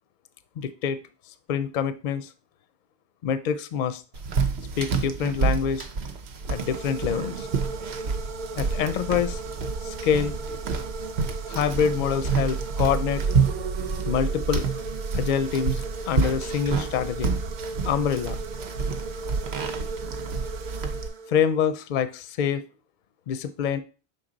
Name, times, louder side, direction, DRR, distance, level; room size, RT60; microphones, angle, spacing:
voice 1, 0.6-1.0 1.5-2.3 3.2-4.0 4.8-5.9 6.5-7.5 8.6-9.4 9.8-10.3 11.5-13.2 14.1-14.9 15.1-15.8 16.1-17.3 17.8-18.4 21.3-22.6 23.3-23.8, left 7 dB, 55° left, 12 dB, 0.6 m, -26 dB
sound 1, 4.1-21.1, right 5 dB, 80° right, 1.0 m, -29 dB
sound 2, 6.4-21.6, right 4 dB, 55° right, 0.6 m, -37 dB
6.1 x 4.0 x 3.8 m, 0.34 s
omnidirectional pair, 1.1 m